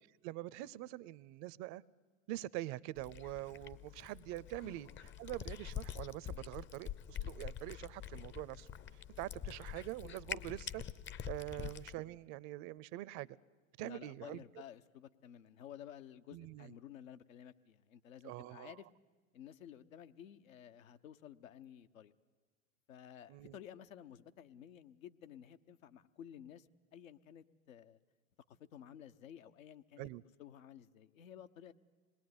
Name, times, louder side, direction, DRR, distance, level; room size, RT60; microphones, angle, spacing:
voice 1, 0.2-1.8 2.3-4.9 5.2-8.7 9.2-10.8 11.3-13.3 13.8-14.4 16.3-16.7 18.2-18.7 23.3-23.5 30.0-30.2, right 16 dB, 45° right, 0.7 m, -44 dB
Cat, 3.0-12.0, left 9 dB, 30° left, 0.8 m, -46 dB
voice 2, 13.8-18.9 19.3-22.1 22.9-28.0 28.5-30.1 30.4-31.7, left 10 dB, 75° left, 1.1 m, -54 dB
26.5 x 20.0 x 9.6 m
hypercardioid pair, 90°, 41 cm